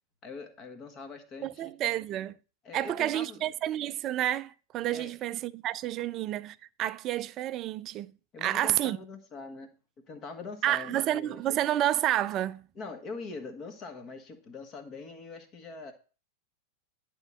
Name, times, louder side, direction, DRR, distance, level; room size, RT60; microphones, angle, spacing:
voice 1, 0.2-1.7 2.6-3.5 4.9-5.1 8.3-9.7 10.1-11.4 12.7-15.9, left 3 dB, 30° left, 1.6 m, -43 dB
voice 2, 1.4-2.3 2.7-8.1 8.4-9.0 10.6-12.6, right 13 dB, 35° right, 0.4 m, -30 dB
10.5 x 3.8 x 7.2 m
figure-of-eight pair, 90°, 0 cm